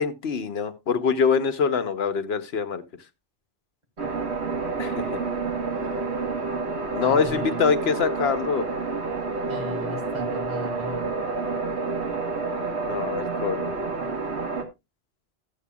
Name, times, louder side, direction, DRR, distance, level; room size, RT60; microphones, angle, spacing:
voice 1, 0.0-2.8 4.8-5.2 6.9-8.7 12.8-13.8, left 6 dB, 75° left, 11 dB, 1.1 m, -24 dB
sound 1, 4.0-14.6, right 4 dB, 80° right, 1.9 m, -29 dB
voice 2, 7.0-7.6 9.5-11.1, left 1 dB, 40° right, 0 dB, 2.9 m, -36 dB
13.5 x 8.5 x 2.3 m, 0.22 s
omnidirectional pair, 1.1 m